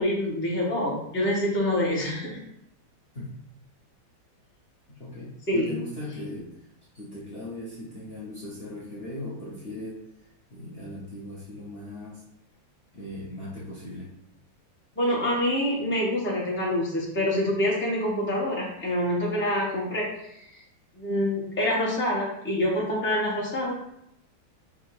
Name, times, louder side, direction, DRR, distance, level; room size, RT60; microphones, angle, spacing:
voice 1, 0.0-2.4 5.5-5.7 15.0-20.6 20.9-23.7, left 1 dB, 15° left, -5 dB, 0.4 m, -26 dB
voice 2, 4.9-6.7 6.9-12.2 12.9-14.1, left 1 dB, 80° left, -6 dB, 0.5 m, -39 dB
3.6 x 2.5 x 4.6 m, 0.78 s
omnidirectional pair, 2.1 m